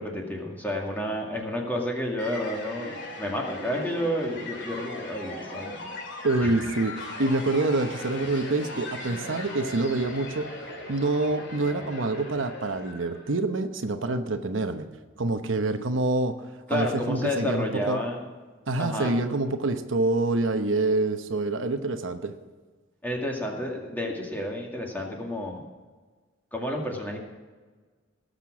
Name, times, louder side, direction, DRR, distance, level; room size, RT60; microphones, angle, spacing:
voice 1, 0.0-5.9 6.4-6.5 16.7-18.2 18.8-19.1 23.0-25.6 26.5-27.2, left 1 dB, 10° left, -1 dB, 2.2 m, -30 dB
sound 1, 2.2-13.3, left 2 dB, 60° left, 3.3 m, -39 dB
voice 2, 6.2-10.5 10.9-14.9 15.2-16.3 16.7-18.0 18.7-22.3, right 2 dB, 75° right, 7 dB, 0.9 m, -26 dB
18.0 x 6.7 x 6.3 m, 1.4 s
head